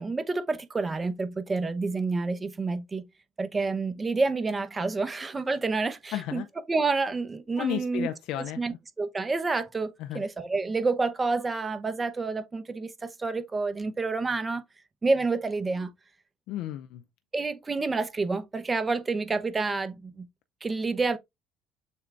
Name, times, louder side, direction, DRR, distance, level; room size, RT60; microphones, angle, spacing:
voice 1, 0.0-3.1 3.4-6.4 6.7-8.1 8.6-14.6 15.0-15.9 17.3-20.3 20.6-21.2, right 3 dB, 25° right, 0.8 m, -29 dB
voice 2, 6.1-6.5 7.6-8.8 10.0-10.2 16.5-17.0, left 13 dB, 65° left, 0.4 m, -33 dB
6.8 x 2.4 x 3.3 m
hypercardioid pair, 65°, 0 cm